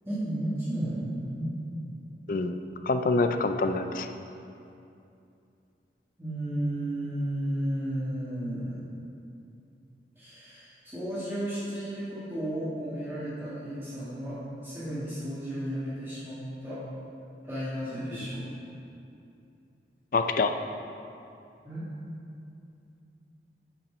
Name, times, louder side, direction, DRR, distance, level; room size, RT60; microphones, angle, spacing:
voice 1, 0.0-1.6 6.2-8.8 10.1-14.4 14.6-16.4 16.6-16.8 17.5-18.5 21.6-21.9, right 1 dB, 15° right, -13 dB, 1.6 m, -33 dB
voice 2, 2.3-2.6 2.8-4.1 20.1-20.5, left 3 dB, 50° left, 7 dB, 0.4 m, -26 dB
7.1 x 5.8 x 5.5 m, 2.7 s
head